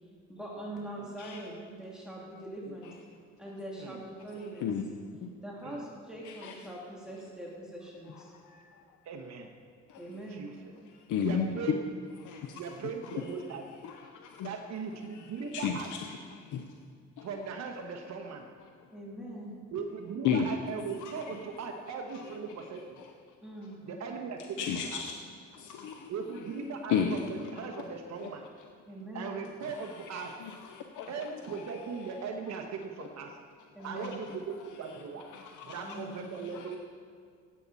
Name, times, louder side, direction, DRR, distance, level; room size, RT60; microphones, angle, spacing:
voice 1, 0.3-2.9 3.4-4.7 5.4-8.3 10.0-10.5 18.9-19.6 23.4-23.8 28.9-29.4 33.7-34.2 35.8-36.1, right 1 dB, ahead, -5 dB, 2.7 m, -42 dB
voice 2, 8.3-8.8 9.9-10.0 10.9-11.5 12.2-12.6 13.0-13.2 13.8-14.5 15.5-16.7 17.2-17.3 20.2-20.5 21.0-21.4 24.6-25.2 25.5-26.1 26.9-27.2 29.7-32.1 33.8-34.2 35.3-35.8 36.5-36.8, left 7 dB, 80° left, 4 dB, 0.8 m, -34 dB
voice 3, 9.0-9.5 10.3-10.7 11.2-11.9 12.5-13.7 14.4-15.9 17.2-18.5 19.7-23.0 23.8-25.0 26.1-28.5 29.1-30.3 31.1-33.4 33.8-35.2 35.6-36.8, right 5 dB, 60° right, 2 dB, 1.2 m, -39 dB
17.0 x 8.5 x 4.1 m, 2.1 s
cardioid pair, 90°, 30 cm